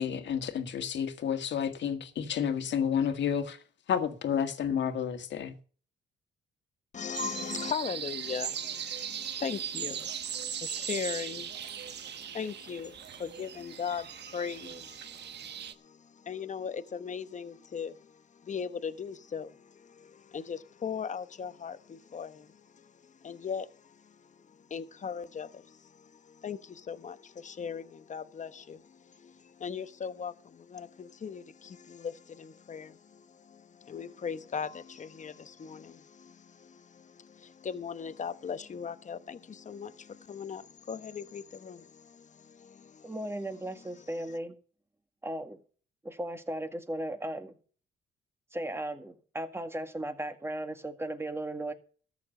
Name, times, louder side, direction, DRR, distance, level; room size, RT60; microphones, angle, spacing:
voice 1, 0.0-3.6 3.9-5.5, left 8 dB, 65° left, 1.8 m, -30 dB
voice 2, 6.9-43.2, left 6 dB, 40° left, 1.0 m, -39 dB
sound 1, 7.1-15.7, right 8 dB, 60° right, 1.1 m, -38 dB
voice 3, 43.0-44.6 45.2-45.6 46.0-47.6 48.5-51.7, right 1 dB, 10° right, 2.0 m, -36 dB
13.5 x 7.0 x 6.6 m
cardioid pair, 90°, 20 cm